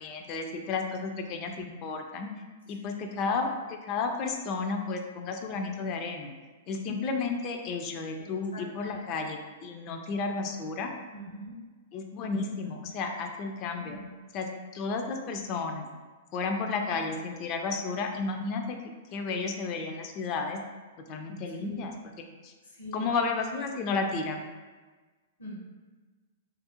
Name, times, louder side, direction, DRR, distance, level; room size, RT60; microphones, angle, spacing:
voice 1, 0.0-2.3 2.7-6.3 6.7-10.9 11.9-14.0 14.3-14.5 14.7-15.9 16.3-18.8 19.1-20.6 21.1-21.9 22.2-22.5 22.9-24.4, left 4 dB, 40° left, 4 dB, 0.3 m, -32 dB
voice 2, 2.8-3.2 8.2-9.0 11.1-11.6 13.8-14.1 19.2-19.3 21.5-22.0 22.6-23.1 25.4-25.5, right 1 dB, 85° left, -4 dB, 0.9 m, -44 dB
2.4 x 2.0 x 2.8 m, 1.3 s
hypercardioid pair, 110°, 0 cm